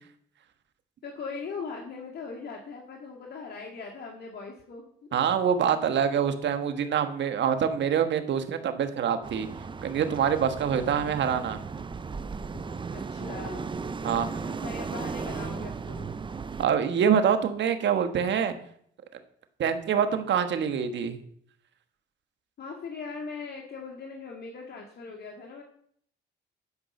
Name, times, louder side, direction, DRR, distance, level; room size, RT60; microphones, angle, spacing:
voice 1, 1.0-4.9 5.3-5.4 10.6-10.9 12.9-13.7 14.4-16.1 22.6-25.6, left 4 dB, 55° left, 0 dB, 1.9 m, -40 dB
voice 2, 5.1-9.5 9.8-11.6 14.0-14.3 16.6-18.5 19.6-21.2, right 7 dB, 65° right, 8 dB, 1.4 m, -25 dB
sound 1, 9.2-16.7, right 5 dB, 25° right, 0.6 m, -36 dB
11.0 x 5.4 x 6.5 m, 0.64 s
cardioid pair, 90°, 20 cm